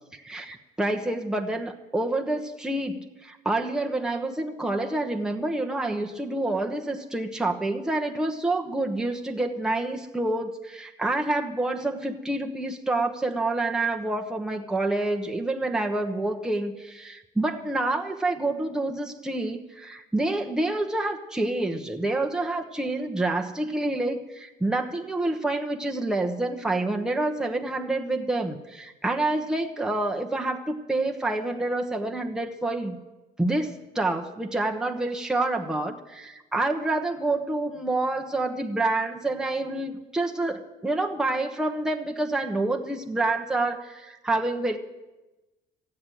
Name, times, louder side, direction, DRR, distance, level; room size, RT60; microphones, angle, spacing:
voice 1, 0.1-33.0 33.4-44.8, right 2 dB, 5° right, 2 dB, 1.1 m, -28 dB
14.5 x 8.6 x 9.1 m, 1.1 s
cardioid pair, 110°, 17 cm